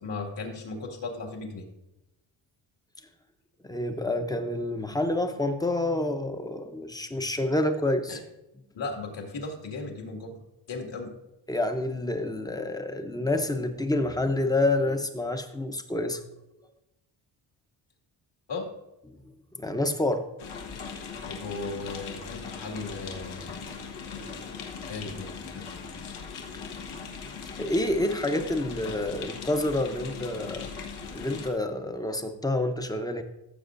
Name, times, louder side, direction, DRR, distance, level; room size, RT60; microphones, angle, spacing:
voice 1, 0.0-1.7 8.1-8.2 8.7-10.4 10.7-11.1 18.5-18.7 21.2-23.7 24.0-24.5 24.9-26.2, left 3 dB, 60° left, 2 dB, 2.1 m, -37 dB
voice 2, 3.6-8.2 11.5-16.2 19.6-20.3 27.6-30.7 31.1-33.2, left 1 dB, 10° left, 7 dB, 0.7 m, -28 dB
sound 1, 20.4-31.5, left 5 dB, 85° left, 1.4 m, -39 dB
15.0 x 7.2 x 2.6 m, 0.92 s
cardioid pair, 130°, 47 cm